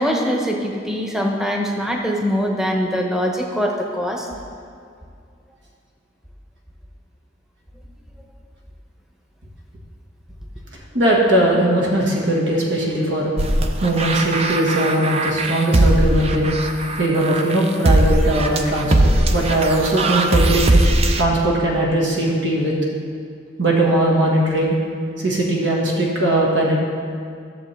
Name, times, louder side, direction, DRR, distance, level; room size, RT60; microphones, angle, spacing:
voice 1, 0.0-4.3, equal, 5° right, 0 dB, 0.9 m, -22 dB
voice 2, 10.9-13.3 13.8-16.5 17.0-20.6 21.2-22.7 23.6-24.7 25.2-26.7, right 1 dB, 75° right, -3 dB, 1.6 m, -19 dB
sound 1, 13.4-21.2, right 1 dB, 35° right, 0.5 m, -19 dB
14.5 x 7.1 x 3.3 m, 2.3 s
head